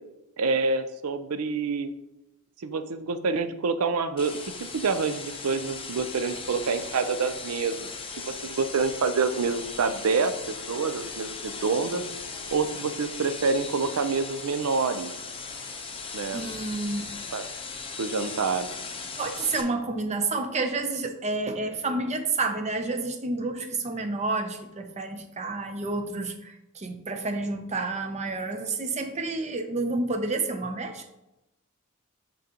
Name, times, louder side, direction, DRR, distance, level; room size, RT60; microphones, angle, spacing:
voice 1, 0.4-1.9 2.6-7.8 8.4-10.3 10.7-12.0 12.5-15.1 16.1-16.4 17.3-17.4 17.9-18.7, right 4 dB, 80° right, 10 dB, 0.5 m, -27 dB
sound 1, 4.2-19.6, left 4 dB, 25° left, 0.7 m, -38 dB
sound 2, 8.1-16.6, left 3 dB, 80° left, 0.6 m, -51 dB
voice 2, 16.3-17.1 19.2-31.1, right 3 dB, 30° right, 6 dB, 0.6 m, -30 dB
9.7 x 3.8 x 2.9 m, 0.92 s
head